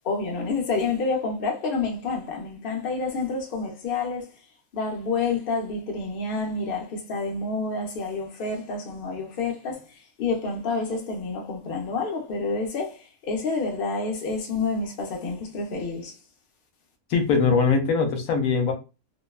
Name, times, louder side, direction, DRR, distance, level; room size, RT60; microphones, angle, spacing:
voice 1, 0.0-4.3 4.7-9.8 10.2-16.1, left 4 dB, 55° left, 0.6 m, -28 dB
voice 2, 17.1-18.7, left 5 dB, 75° left, 1.0 m, -21 dB
2.8 x 2.1 x 2.3 m
omnidirectional pair, 1.6 m